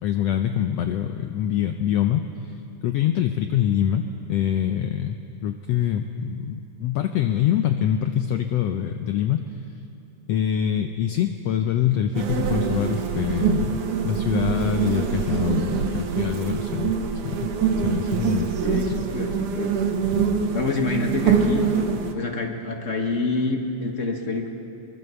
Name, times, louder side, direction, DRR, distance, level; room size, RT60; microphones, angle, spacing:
voice 1, 0.0-4.0 4.3-9.4 10.3-16.9 17.2-17.5 17.8-18.5, left 10 dB, 75° left, 7 dB, 1.5 m, -25 dB
sound 1, 12.1-22.1, right 6 dB, 75° right, 2.9 m, -24 dB
voice 2, 18.6-19.7 20.5-21.6 22.1-24.5, left 3 dB, 45° left, 3 dB, 0.9 m, -27 dB
23.5 x 21.5 x 6.9 m, 2.9 s
omnidirectional pair, 3.6 m